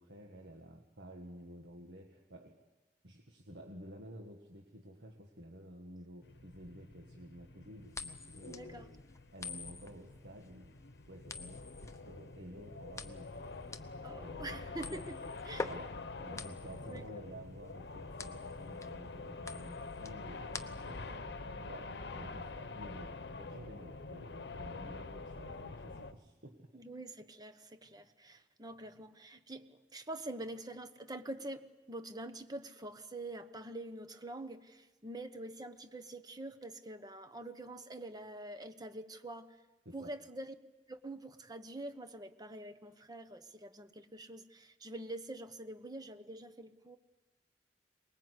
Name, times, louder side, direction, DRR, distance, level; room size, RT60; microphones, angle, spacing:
voice 1, 0.0-2.6 3.0-8.9 9.3-10.7 11.1-13.5 14.2-14.6 14.8-15.1 15.6-26.7 39.9-40.1, equal, 80° right, 1 dB, 1.9 m, -52 dB
sound 1, 6.2-26.1, left 3 dB, 70° left, 0.9 m, -46 dB
sound 2, 7.9-21.1, left 3 dB, 15° left, 0.8 m, -46 dB
voice 2, 8.4-8.9 14.0-15.2 15.5-15.7 16.3-16.4 16.8-17.0 24.8-24.9 26.7-39.6 39.9-40.5 40.9-47.0, right 1 dB, 25° right, 9 dB, 1.1 m, -46 dB
23.5 x 21.0 x 8.2 m, 1.2 s
head